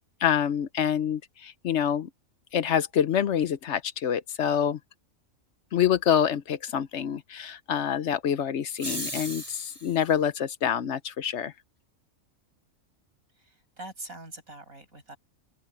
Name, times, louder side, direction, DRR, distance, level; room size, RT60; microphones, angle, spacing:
voice 1, 0.2-2.1 2.5-4.8 5.7-11.5, left 9 dB, 60° left, 1.0 m, -26 dB
sound 1, 8.7-10.0, right 1 dB, 10° right, 3.0 m, -36 dB
voice 2, 13.5-15.2, right 2 dB, 90° right, 7.2 m, -43 dB
open air
omnidirectional pair, 1.4 m